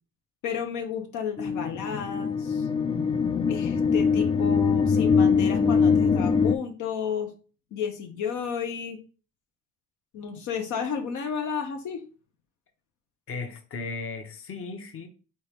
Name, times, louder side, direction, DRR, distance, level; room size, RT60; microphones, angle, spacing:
voice 1, 0.4-2.7 3.5-7.3 7.7-9.0 10.1-12.0, left 7 dB, 75° left, 0.8 m, -32 dB
sound 1, 1.4-6.6, left 5 dB, 20° left, 0.3 m, -23 dB
voice 2, 13.3-15.1, left 4 dB, 45° left, 0.9 m, -36 dB
4.3 x 3.3 x 3.5 m
cardioid pair, 90°, 30 cm